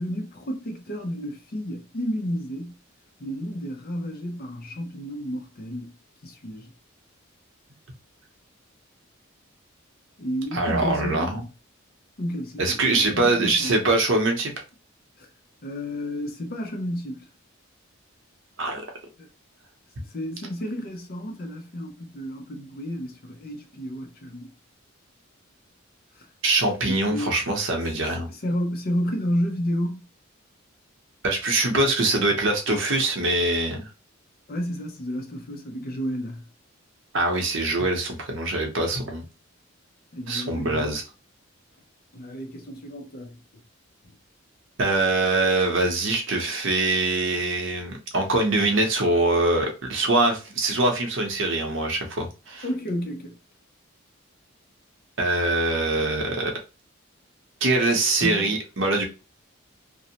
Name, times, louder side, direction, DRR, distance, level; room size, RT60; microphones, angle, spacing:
voice 1, 0.0-2.8 3.2-5.9 6.2-6.7 10.2-11.5 12.2-13.8 15.2-15.3 15.6-17.3 19.2-19.3 20.0-24.5 26.1-26.3 26.8-27.3 28.3-30.1 34.5-36.4 40.1-40.9 42.1-43.4 52.6-53.4 58.2-58.5, equal, 45° left, 0.6 m, -31 dB
voice 2, 10.5-11.4 12.6-14.5 18.6-18.8 26.4-28.3 31.2-33.9 37.1-39.3 40.3-41.0 44.8-52.6 55.2-56.5 57.6-59.0, right 2 dB, 65° right, 0.7 m, -23 dB
2.6 x 2.0 x 2.7 m
head